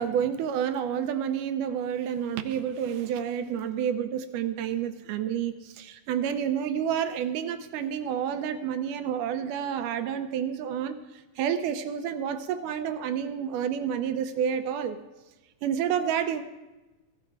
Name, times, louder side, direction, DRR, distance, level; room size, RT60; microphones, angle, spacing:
voice 1, 0.0-11.0 11.4-15.0 15.6-16.4, right 8 dB, 80° right, 10 dB, 2.0 m, -29 dB
15.0 x 11.0 x 4.6 m, 1.1 s
omnidirectional pair, 4.0 m